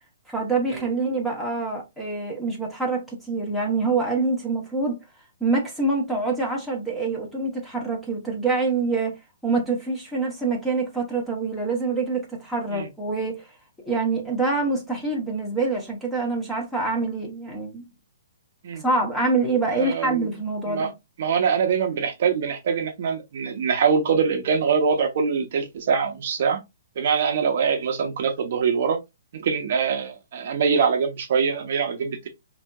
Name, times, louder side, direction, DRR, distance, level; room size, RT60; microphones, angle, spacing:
voice 1, 0.3-5.0 5.4-13.5 13.8-17.8 18.7-20.9, right 3 dB, ahead, 0.8 m, -25 dB
voice 2, 19.7-20.3 20.7-20.9 21.2-26.6 27.0-29.0 29.3-32.3, right 6 dB, 45° right, 0.7 m, -23 dB
4.8 x 2.7 x 2.2 m
hypercardioid pair, 170°, 0 cm